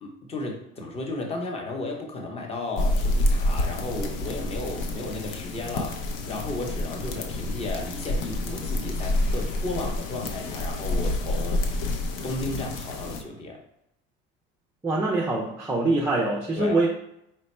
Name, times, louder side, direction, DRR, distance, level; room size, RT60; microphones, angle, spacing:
voice 1, 0.0-11.9 12.2-13.6 16.6-16.8, left 2 dB, 20° left, 1 dB, 0.7 m, -34 dB
sound 1, 2.8-13.2, left 1 dB, 70° left, 0.6 m, -28 dB
voice 2, 14.8-16.9, right 2 dB, 10° right, -3 dB, 0.4 m, -24 dB
4.2 x 2.1 x 4.2 m, 0.80 s
cardioid pair, 130°, 29 cm